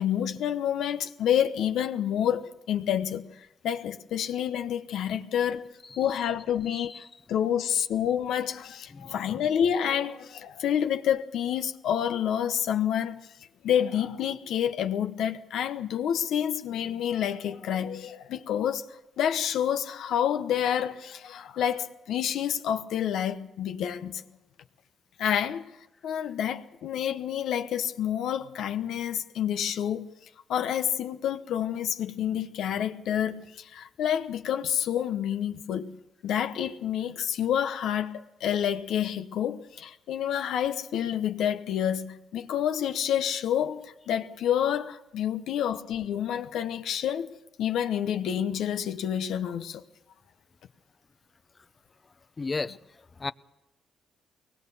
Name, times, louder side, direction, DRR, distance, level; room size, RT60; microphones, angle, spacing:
voice 1, 0.0-5.7 6.0-13.3 13.6-24.2 25.2-25.6 26.0-30.1 30.5-47.3 47.6-49.8, left 9 dB, 80° left, 0.9 m, -28 dB
voice 2, 8.9-9.3 52.4-52.8 53.2-53.3, left 3 dB, 30° left, 0.6 m, -34 dB
22.0 x 19.0 x 6.9 m
cardioid pair, 90°, 0 cm